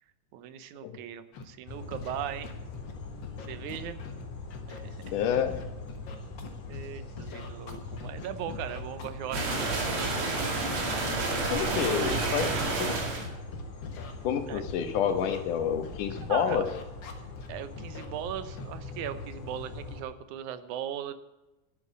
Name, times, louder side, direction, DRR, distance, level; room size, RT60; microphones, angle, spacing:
voice 1, 0.3-2.5 3.5-4.0 4.7-4.9 6.7-10.1 11.6-11.8 14.5-14.6 16.1-16.7 17.5-21.1, right 10 dB, 75° right, 12 dB, 2.2 m, -39 dB
Scratching (performance technique), 1.3-1.4 1.9-2.1 2.4-2.9 3.2-4.2 4.5-6.9 7.2-12.2 12.5-12.8 13.2-14.1 14.6-14.7 15.1-15.4 15.8-17.5 17.8-18.1 18.6-18.7, left 5 dB, 45° left, 1.7 m, -44 dB
sound 1, 1.7-20.0, left 3 dB, 65° left, 3.1 m, -42 dB
voice 2, 5.1-5.6 11.5-12.5 12.8-13.0 14.2-16.7, left 8 dB, 85° left, 8 dB, 2.8 m, -28 dB
sound 2, 9.3-13.3, right 3 dB, 45° right, 2.8 m, -29 dB
11.5 x 7.9 x 8.6 m, 0.99 s
omnidirectional pair, 3.5 m